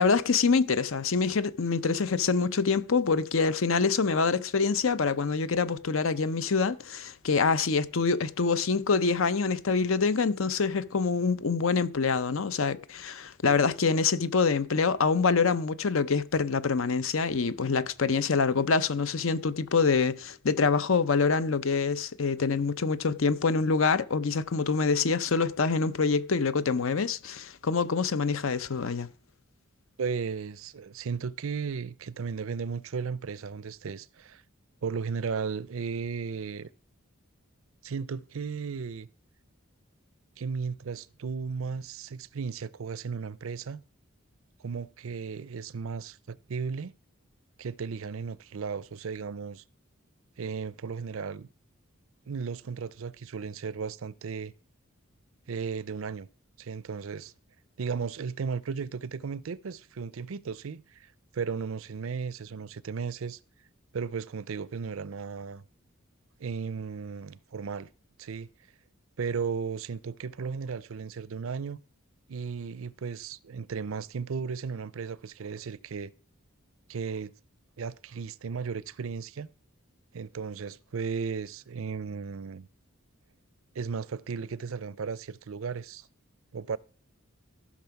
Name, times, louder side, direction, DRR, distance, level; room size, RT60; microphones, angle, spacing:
voice 1, 0.0-29.1, left 4 dB, 70° left, 0.7 m, -26 dB
voice 2, 30.0-34.4 34.8-36.7 37.8-39.1 40.4-43.8 44.6-46.9 47.6-49.6 50.4-51.5 52.3-54.5 55.5-56.3 56.6-57.3 57.8-63.4 63.9-65.6 66.4-67.9 68.2-68.5 69.2-71.8 72.3-76.1 76.9-77.3 77.8-79.5 80.1-82.7 83.7-86.1 86.5-86.8, right 5 dB, 70° right, 0.5 m, -35 dB
14.0 x 6.1 x 5.8 m
head